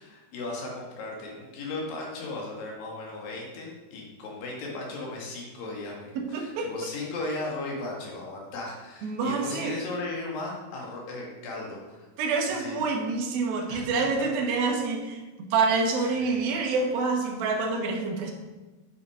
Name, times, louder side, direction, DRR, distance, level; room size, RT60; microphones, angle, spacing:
voice 1, 0.0-12.1 12.5-12.8 13.7-14.3 16.0-16.3, left 2 dB, 65° left, -2 dB, 3.5 m, -36 dB
voice 2, 6.2-6.7 9.0-9.8 12.2-18.3, right 4 dB, 70° right, 3 dB, 2.9 m, -27 dB
9.5 x 6.7 x 4.9 m, 1.2 s
omnidirectional pair, 4.6 m